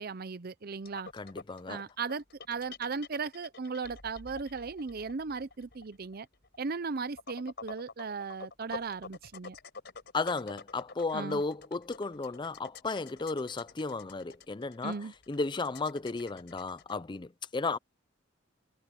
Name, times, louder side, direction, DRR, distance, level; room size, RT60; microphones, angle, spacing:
voice 1, 0.0-1.1 1.7-6.3 6.6-9.6 11.1-11.4 14.8-15.1, right 4 dB, 50° right, 0.6 m, -37 dB
sound 1, 0.9-16.9, left 4 dB, 60° left, 4.2 m, -48 dB
voice 2, 1.1-1.8 10.1-15.0 15.3-17.8, left 3 dB, 25° left, 0.5 m, -34 dB
head